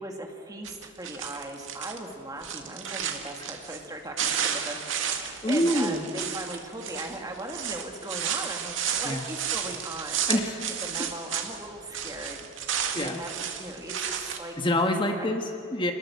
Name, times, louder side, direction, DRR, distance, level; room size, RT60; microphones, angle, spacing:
voice 1, 0.0-12.5 12.9-14.6 15.2-15.3, right 1 dB, 20° right, 2 dB, 2.4 m, -38 dB
sound 1, 0.6-2.0 2.4-3.9 4.2-11.7 11.9-14.4, right 8 dB, 80° right, 2.1 m, -32 dB
voice 2, 5.4-6.0 9.0-9.3 10.3-10.6 12.9-13.2 14.6-15.9, left 1 dB, 25° left, 4 dB, 1.5 m, -26 dB
27.0 x 20.0 x 7.1 m, 2.4 s
head